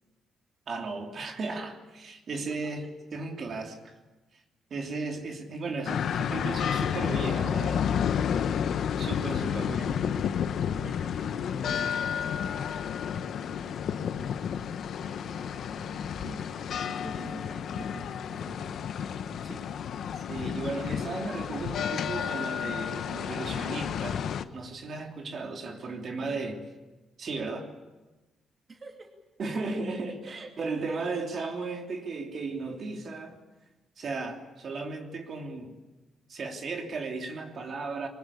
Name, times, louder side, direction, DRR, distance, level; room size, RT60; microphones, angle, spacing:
voice 1, 0.7-2.9 3.1-3.9 4.7-7.9 9.0-10.0 19.5-19.6 20.2-24.3 24.5-26.6 27.2-27.7 29.4-33.4 34.0-35.7 36.3-38.1, right 3 dB, 50° right, 3.1 m, -35 dB
voice 2, 2.3-2.9 9.4-9.8 10.8-14.4 15.0-19.7 26.2-26.5 28.7-29.2 29.5-29.8 30.2-31.2, right 3 dB, 35° right, 2.7 m, -49 dB
sound 1, 5.9-24.4, left 8 dB, 65° left, 1.1 m, -31 dB
23.5 x 19.5 x 8.6 m
cardioid pair, 90°, 0 cm